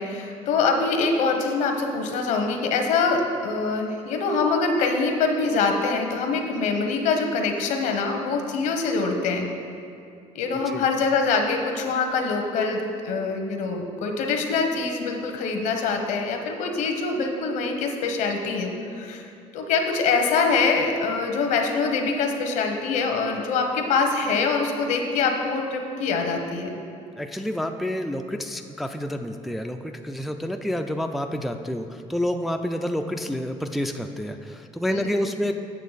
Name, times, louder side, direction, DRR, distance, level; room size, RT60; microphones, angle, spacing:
voice 1, 0.0-9.5 10.3-19.3 19.5-26.7 34.9-35.1, left 4 dB, 75° left, 4 dB, 1.0 m, -24 dB
voice 2, 27.2-35.6, left 1 dB, ahead, 5 dB, 0.3 m, -29 dB
8.3 x 6.7 x 4.0 m, 2.5 s
cardioid pair, 115°, 13 cm